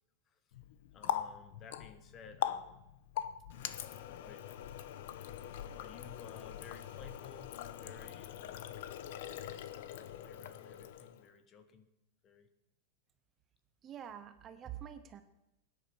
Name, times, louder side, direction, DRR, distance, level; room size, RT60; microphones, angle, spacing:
Water tap faucet, 0.5-11.3, left 11 dB, 60° left, 0.9 m, -42 dB
voice 1, 0.9-2.8 4.2-4.7 5.7-8.8 9.9-11.9 12.2-12.5, left 5 dB, 20° left, 11 dB, 1.0 m, -56 dB
voice 2, 13.8-15.2, right 10 dB, 20° right, 9 dB, 0.7 m, -46 dB
18.0 x 10.0 x 7.0 m, 0.92 s
supercardioid pair, 180°, 0 cm